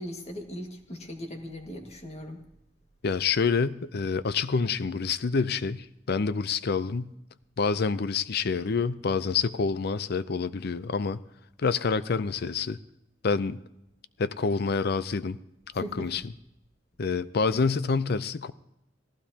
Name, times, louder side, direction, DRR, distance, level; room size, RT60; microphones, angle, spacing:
voice 1, 0.0-2.4 15.7-16.2, equal, 35° left, 3 dB, 1.8 m, -39 dB
voice 2, 3.0-7.1 7.6-11.2 11.6-12.8 13.2-13.6 14.2-15.4 15.7-16.2 17.0-18.5, left 5 dB, 60° left, 15 dB, 0.5 m, -27 dB
18.5 x 15.0 x 2.8 m, 0.86 s
head